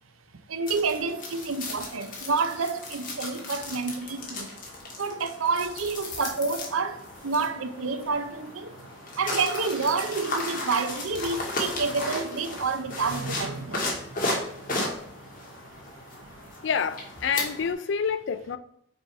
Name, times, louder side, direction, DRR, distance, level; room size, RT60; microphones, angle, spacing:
voice 1, 0.5-4.5 5.0-8.8 9.2-13.9, right 4 dB, 90° right, 0.7 m, -29 dB
sound 1, 0.7-17.7, left 2 dB, 40° left, 1.6 m, -35 dB
voice 2, 16.6-18.6, left 6 dB, 60° left, 0.4 m, -28 dB
6.1 x 3.3 x 5.1 m
head